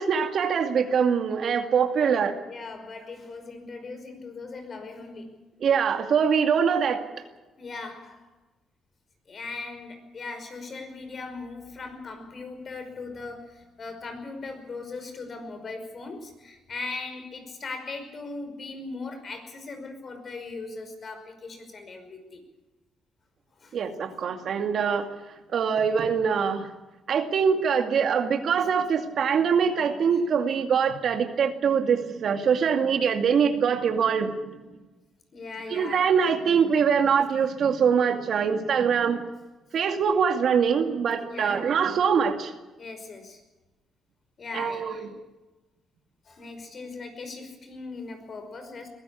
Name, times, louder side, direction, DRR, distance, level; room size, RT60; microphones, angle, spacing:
voice 1, 0.0-2.4 5.6-7.0 23.7-25.1 25.5-26.7 27.1-34.5 35.7-39.2 39.7-42.5 44.5-45.1, right 6 dB, 60° right, 6 dB, 2.3 m, -23 dB
voice 2, 2.5-5.4 7.6-8.3 9.3-22.4 23.5-23.8 24.7-25.1 35.3-36.1 41.2-41.7 42.8-43.4 44.4-45.1 46.3-48.9, left 3 dB, 45° left, 7 dB, 5.4 m, -39 dB
22.0 x 15.0 x 8.5 m, 1.1 s
cardioid pair, 90°, 0 cm